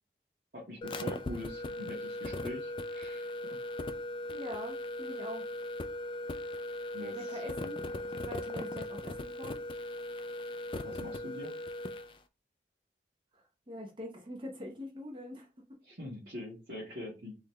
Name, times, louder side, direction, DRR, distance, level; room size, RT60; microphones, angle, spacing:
voice 1, 0.5-3.3 6.9-7.2 10.8-11.5 15.8-17.4, left 1 dB, 65° right, 1.6 m, -43 dB
sound 1, 0.8-12.1, left 1 dB, 30° left, 0.3 m, -38 dB
voice 2, 4.3-5.5 7.1-7.8 8.2-9.6 13.3-15.5, left 1 dB, 30° right, 0.7 m, -43 dB
3.9 x 3.1 x 3.2 m
head